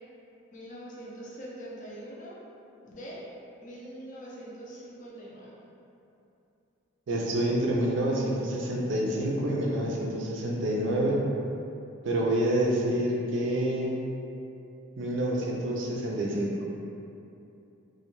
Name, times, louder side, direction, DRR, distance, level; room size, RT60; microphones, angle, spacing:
voice 1, 0.5-2.4 2.8-3.2 3.6-5.5, right 1 dB, 40° left, -5 dB, 0.4 m, -43 dB
voice 2, 7.1-11.2 12.0-14.0 15.0-16.5, right 1 dB, 60° right, -2 dB, 0.4 m, -27 dB
2.2 x 2.1 x 2.9 m, 2.8 s
head